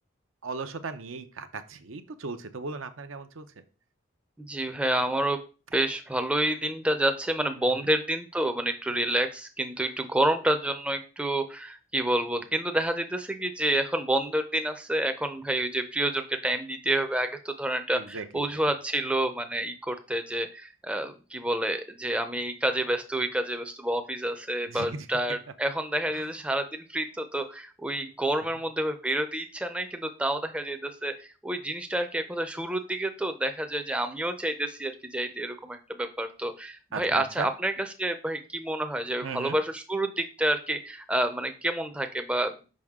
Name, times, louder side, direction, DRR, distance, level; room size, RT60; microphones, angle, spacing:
voice 1, 0.4-3.6 7.6-7.9 12.4-12.5 17.9-18.5 24.7-25.4 26.1-26.3 36.9-37.5 39.2-39.6, right 4 dB, 80° right, 10 dB, 0.7 m, -37 dB
voice 2, 4.4-5.4 5.7-37.7 38.0-42.6, right 1 dB, 5° right, 7 dB, 0.5 m, -29 dB
6.2 x 5.3 x 3.6 m, 0.34 s
head